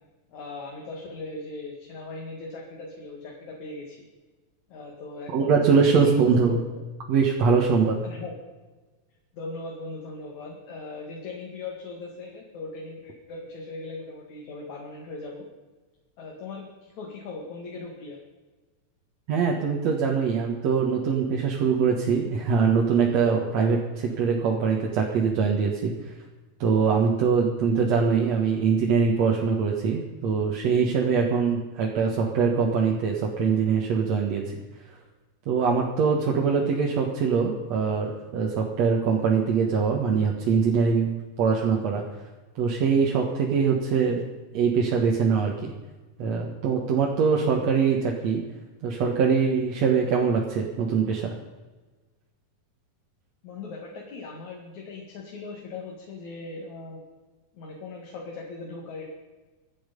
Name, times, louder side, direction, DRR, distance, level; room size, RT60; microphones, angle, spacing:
voice 1, 0.3-4.1 4.7-6.6 8.0-8.4 9.3-15.5 16.2-18.2 53.4-57.0 57.5-59.1, left 3 dB, 65° left, -1 dB, 3.5 m, -39 dB
voice 2, 5.3-6.6 7.1-8.0 19.3-26.1 26.6-34.6 35.5-41.1 41.4-42.0 42.6-44.2 44.5-45.7 46.2-48.4 48.8-51.4, right 5 dB, 60° right, -1 dB, 2.6 m, -23 dB
25.0 x 8.9 x 5.3 m, 1.2 s
omnidirectional pair, 3.6 m